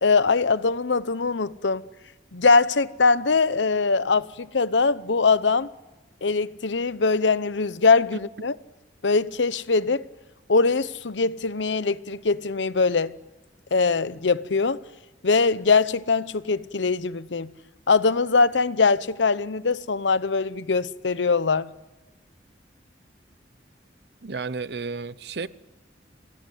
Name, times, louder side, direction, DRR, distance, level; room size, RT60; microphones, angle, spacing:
voice 1, 0.0-1.8 2.3-5.7 6.2-8.5 9.0-10.1 10.5-13.1 13.7-14.8 15.2-17.5 17.9-21.7, left 4 dB, 90° left, 0.8 m, -22 dB
voice 2, 24.2-25.5, right 4 dB, 65° right, 0.8 m, -32 dB
27.0 x 19.5 x 9.4 m
head